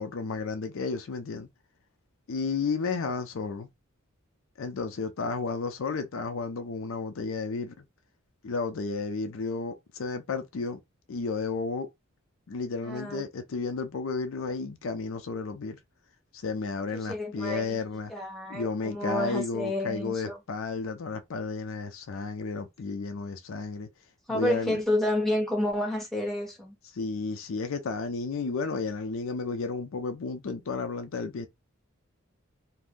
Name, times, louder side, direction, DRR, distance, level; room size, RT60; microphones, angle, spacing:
voice 1, 0.0-1.5 2.3-3.7 4.6-7.8 8.4-10.8 11.1-11.9 12.5-15.8 16.3-18.1 18.5-23.9 24.3-24.8 26.9-31.5, left 4 dB, 70° left, 0.5 m, -32 dB
voice 2, 12.8-13.2 16.9-17.8 18.1-20.4 24.3-26.7, left 1 dB, ahead, 1.1 m, -30 dB
2.5 x 2.1 x 3.6 m
head